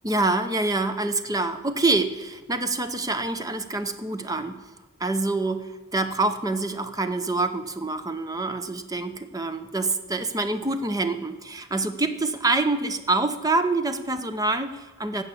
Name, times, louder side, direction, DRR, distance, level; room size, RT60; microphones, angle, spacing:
voice 1, 0.0-4.6 5.0-15.2, right 2 dB, 15° right, 9 dB, 0.7 m, -26 dB
15.0 x 5.6 x 8.5 m, 1.2 s
head